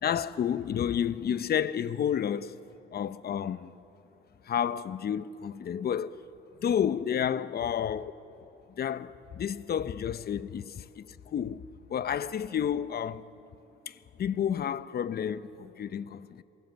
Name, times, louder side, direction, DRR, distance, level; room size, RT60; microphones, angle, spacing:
voice 1, 0.0-2.6 2.9-3.7 4.4-6.2 6.6-8.1 8.7-11.6 11.9-13.3 13.9-16.4, left 8 dB, 50° left, 0.8 m, -31 dB
27.5 x 19.0 x 8.0 m
cardioid pair, 90°, 20 cm